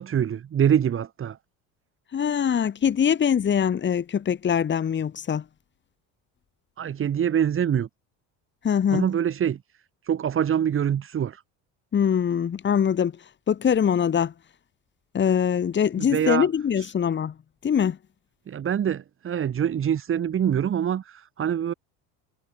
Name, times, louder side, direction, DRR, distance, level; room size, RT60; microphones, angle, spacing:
voice 1, 0.0-1.4 6.8-7.9 8.9-9.6 10.0-11.4 16.0-16.5 16.8-16.9 18.5-21.7, right 9 dB, 35° right, 6.0 m, -25 dB
voice 2, 2.1-5.4 8.6-9.0 11.9-13.1 13.5-14.3 15.1-17.3 17.6-18.0, left 8 dB, 30° left, 4.4 m, -23 dB
cardioid pair, 140°, 37 cm